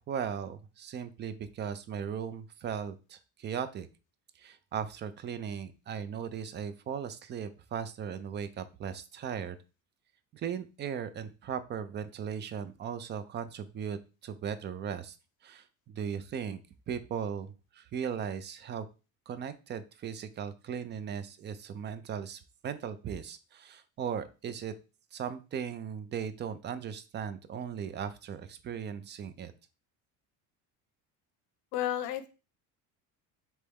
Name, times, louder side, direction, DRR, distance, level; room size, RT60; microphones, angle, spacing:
voice 1, 0.1-3.9 4.4-9.6 10.3-15.1 15.4-16.6 16.9-18.9 19.3-24.7 25.1-29.5, right 8 dB, 30° right, 12 dB, 0.4 m, -37 dB
voice 2, 31.7-32.3, left 12 dB, 80° left, 11 dB, 0.7 m, -31 dB
4.2 x 3.4 x 3.4 m, 0.31 s
cardioid pair, 140°, 37 cm